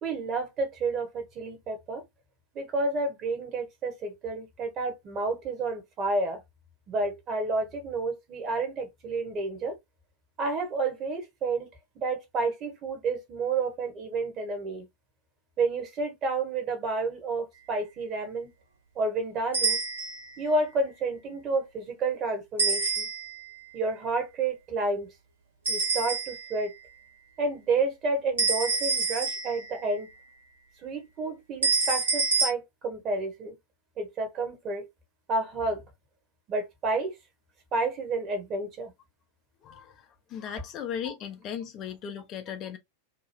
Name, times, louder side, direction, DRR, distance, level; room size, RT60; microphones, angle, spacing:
voice 1, 0.0-2.0 2.5-6.4 6.9-9.7 10.4-11.7 12.0-14.8 15.6-18.5 19.0-19.8 20.4-23.1 23.7-25.1 25.7-26.7 27.4-30.1 30.8-33.5 34.0-34.9 35.3-35.8 36.5-37.1 37.7-38.9 41.0-41.1, right 3 dB, 30° right, 1.1 m, -30 dB
sound 1, 19.5-20.3 22.6-23.5 25.6-26.6 28.4-29.8 31.6-32.5, right 4 dB, 75° right, 1.1 m, -27 dB
voice 2, 39.6-42.8, left 8 dB, 35° left, 0.5 m, -37 dB
2.8 x 2.3 x 3.0 m
figure-of-eight pair, 90°, 0 cm